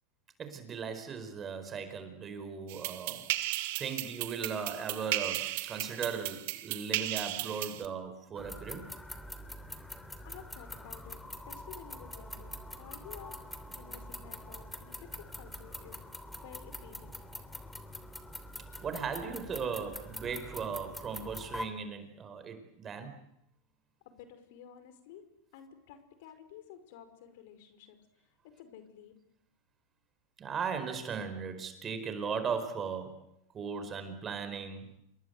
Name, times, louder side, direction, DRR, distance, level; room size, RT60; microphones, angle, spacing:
voice 1, 0.4-3.3 3.8-8.9 18.8-23.1 30.4-33.3 33.5-35.0, right 6 dB, 25° right, 9 dB, 4.6 m, -37 dB
sound 1, 2.7-7.9, right 17 dB, 65° right, 1.8 m, -35 dB
sound 2, 8.4-21.6, left 1 dB, 5° left, 3.0 m, -44 dB
voice 2, 10.2-11.2 11.5-13.4 13.8-16.0 16.4-17.2 24.1-25.2 25.5-28.0 28.6-29.1, left 9 dB, 65° left, 10 dB, 5.2 m, -52 dB
28.5 x 22.5 x 8.1 m, 0.78 s
supercardioid pair, 125°, 0 cm